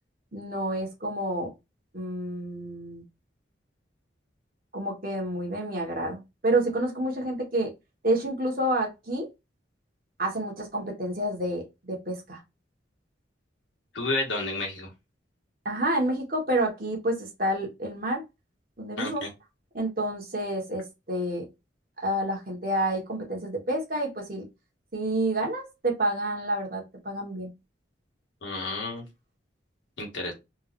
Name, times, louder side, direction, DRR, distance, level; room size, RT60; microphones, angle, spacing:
voice 1, 0.3-1.5 1.9-3.0 4.7-7.7 8.0-9.3 10.2-12.4 15.6-18.2 18.8-19.3 19.7-21.5 22.0-24.4 24.9-27.5, right 1 dB, 50° right, 1.5 m, -29 dB
voice 2, 13.9-14.9 19.0-19.3 28.4-29.0 30.0-30.3, left 2 dB, 85° left, 1.5 m, -31 dB
3.6 x 3.1 x 2.6 m
head